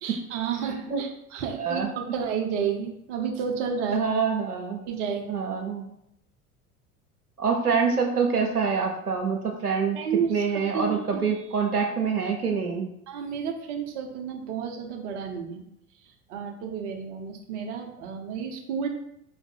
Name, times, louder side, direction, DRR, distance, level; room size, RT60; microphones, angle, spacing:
voice 1, 0.0-4.1 4.8-5.2 9.9-10.4 10.7-11.2 13.1-15.6 16.3-18.9, right 6 dB, 55° right, 3 dB, 1.0 m, -31 dB
voice 2, 0.6-1.0 1.6-1.9 3.9-4.8 5.3-5.9 7.4-10.0 10.3-12.9, right 5 dB, 85° right, 1 dB, 0.9 m, -26 dB
4.8 x 2.6 x 4.2 m, 0.78 s
figure-of-eight pair, 75°, 44 cm